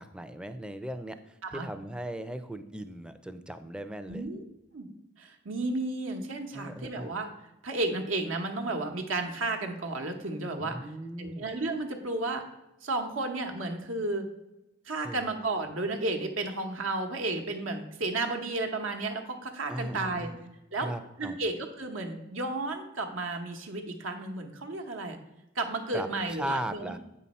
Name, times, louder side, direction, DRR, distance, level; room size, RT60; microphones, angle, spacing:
voice 1, 0.0-4.2 6.5-7.1 10.6-11.4 15.0-15.3 19.7-20.4 20.7-21.4 25.9-27.0, right 1 dB, 5° right, 10 dB, 0.4 m, -38 dB
voice 2, 4.1-4.4 4.7-4.9 5.2-7.3 7.6-10.8 11.2-12.4 12.8-14.3 14.9-20.3 20.7-20.9 21.2-25.2 25.5-26.9, right 2 dB, 80° right, 4 dB, 1.0 m, -32 dB
7.8 x 5.6 x 4.2 m, 0.94 s
head